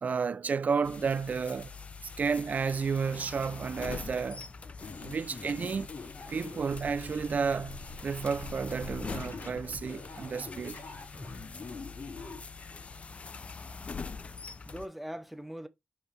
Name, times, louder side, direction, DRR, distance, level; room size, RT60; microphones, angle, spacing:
voice 1, 0.0-1.7 2.0-4.5 5.0-5.9 6.3-10.8, right 5 dB, 50° right, 0.5 m, -32 dB
sound 1, 0.8-14.9, left 4 dB, 40° left, 0.5 m, -44 dB
sound 2, 4.8-12.9, left 3 dB, 70° left, 3.5 m, -45 dB
voice 2, 13.6-15.7, equal, ahead, 0.9 m, -44 dB
6.1 x 5.3 x 3.2 m
wide cardioid pair, 135°, 3 cm